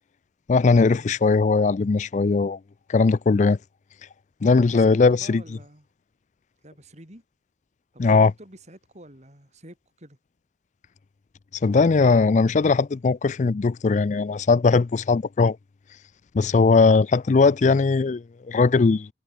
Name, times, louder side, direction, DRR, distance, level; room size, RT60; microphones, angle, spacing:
voice 1, 0.5-2.6 2.9-3.6 4.4-5.4 8.0-8.3 11.6-15.6 16.3-19.1, left 4 dB, 45° left, 0.4 m, -19 dB
voice 2, 4.4-5.9 6.6-7.2 7.9-10.2, right 1 dB, 40° right, 6.8 m, -47 dB
head